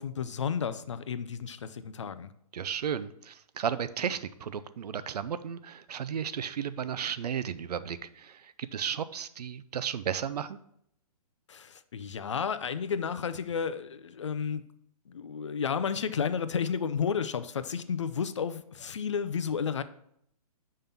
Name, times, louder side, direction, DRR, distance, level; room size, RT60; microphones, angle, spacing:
voice 1, 0.0-2.3 11.5-14.6 15.1-19.8, left 6 dB, 50° left, 13 dB, 0.4 m, -32 dB
voice 2, 2.5-10.6, right 8 dB, 85° right, 14 dB, 0.5 m, -34 dB
5.4 x 3.7 x 5.8 m, 0.71 s
hypercardioid pair, 180°, 20 cm